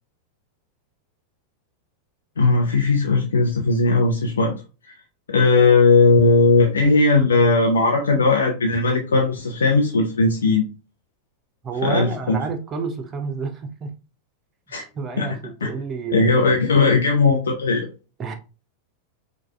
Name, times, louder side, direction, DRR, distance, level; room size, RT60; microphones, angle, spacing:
voice 1, 2.4-4.5 5.3-10.6 11.8-12.4 14.7-14.8 15.2-15.3 15.6-15.7 16.1-17.9, left 3 dB, 70° left, 0.6 m, -17 dB
voice 2, 11.6-13.9 14.9-16.5 18.2-18.3, right 5 dB, 25° right, 0.6 m, -30 dB
4.7 x 2.3 x 2.2 m
figure-of-eight pair, 90°, 0 cm